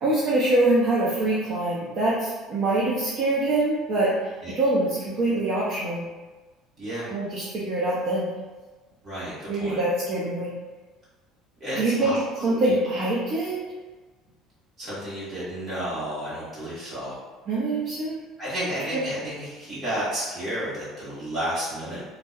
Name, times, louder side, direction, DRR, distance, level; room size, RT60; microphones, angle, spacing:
voice 1, 0.0-6.1 7.1-8.3 9.5-10.5 11.8-13.6 17.5-18.2, right 2 dB, 45° right, -7 dB, 0.4 m, -24 dB
voice 2, 6.8-7.1 9.0-9.8 11.6-12.7 14.8-17.1 18.4-22.0, equal, 20° right, -11 dB, 1.1 m, -32 dB
2.6 x 2.1 x 2.3 m, 1.2 s
cardioid pair, 175°, 0 cm